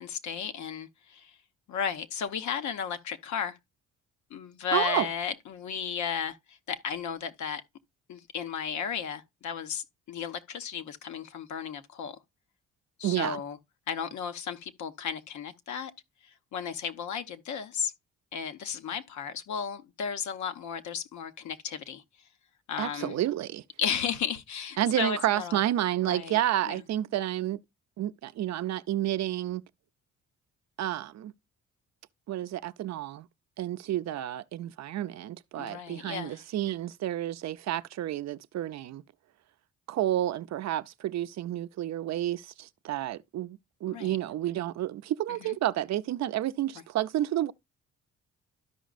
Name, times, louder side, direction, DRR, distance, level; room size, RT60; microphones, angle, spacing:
voice 1, 0.0-1.3 1.7-3.6 4.3-7.6 8.1-12.2 13.0-13.6 13.9-15.9 16.5-17.9 18.3-22.0 22.7-23.2 23.8-25.6 26.0-26.4 26.7-26.8 35.6-36.4 43.9-44.2 45.3-45.5, left 7 dB, 70° left, 1.0 m, -34 dB
voice 2, 4.7-5.1 13.0-13.4 22.8-23.6 24.8-27.6 28.0-29.6 30.8-31.3 32.3-33.3 33.6-39.0 39.9-47.5, right 13 dB, 65° right, 0.5 m, -30 dB
13.0 x 5.1 x 2.4 m
cardioid pair, 90°, 30 cm